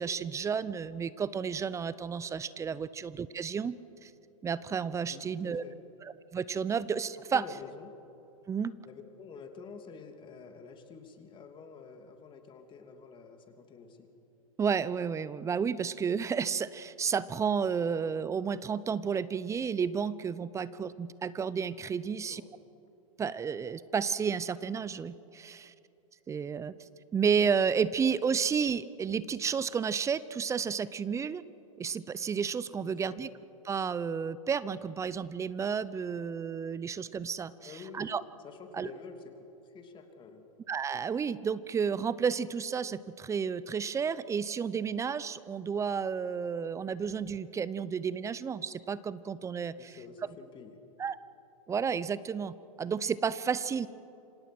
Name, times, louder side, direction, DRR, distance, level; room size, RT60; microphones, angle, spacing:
voice 1, 0.0-3.8 4.0-4.1 4.4-5.6 6.0-7.4 8.5-8.8 14.6-22.4 23.2-25.7 26.3-26.8 27.1-31.4 31.8-33.3 33.6-38.2 38.7-38.9 40.7-50.0 51.0-51.2 51.7-53.9, right 6 dB, 15° right, 17 dB, 0.7 m, -31 dB
voice 2, 5.1-5.8 7.3-7.9 8.8-14.1 21.8-21.9 22.2-22.5 32.8-33.2 37.6-38.2 38.4-40.4 49.8-50.8, left 5 dB, 25° left, 5 dB, 2.9 m, -48 dB
27.5 x 26.0 x 6.2 m, 2.8 s
hypercardioid pair, 115°, 19 cm